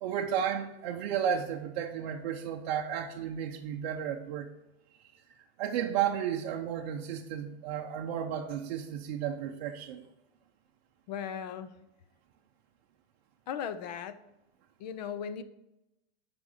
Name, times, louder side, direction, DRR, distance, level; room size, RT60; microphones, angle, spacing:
voice 1, 0.0-4.5 5.6-10.0, right 9 dB, 40° right, 0 dB, 0.7 m, -33 dB
voice 2, 11.1-11.7 13.5-14.2 14.8-15.4, left 8 dB, 40° left, 13 dB, 0.6 m, -37 dB
8.4 x 5.3 x 6.5 m, 0.95 s
supercardioid pair, 165°, 33 cm